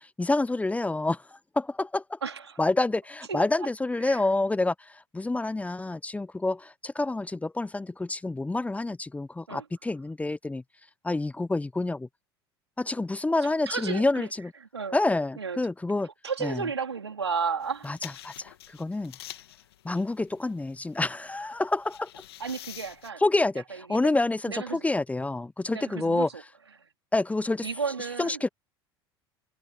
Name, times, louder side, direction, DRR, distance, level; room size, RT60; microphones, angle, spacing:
voice 1, 0.0-2.2 2.6-10.6 11.0-12.1 12.8-14.5 14.9-16.1 16.4-16.7 17.8-19.1 19.8-22.1 23.2-26.3 27.1-27.7 28.2-28.5, left 2 dB, 10° left, 1.0 m, -28 dB
voice 2, 2.2-2.6 3.3-3.4 4.1-4.2 9.5-9.6 13.7-14.3 14.7-15.0 15.4-15.6 16.2-17.9 22.4-23.2 23.9-24.0 24.5-24.8 25.7-26.3 27.6-28.4, right 5 dB, 85° right, 3.6 m, -32 dB
sound 1, 17.6-23.1, left 14 dB, 70° left, 2.9 m, -47 dB
figure-of-eight pair, 70°, 13 cm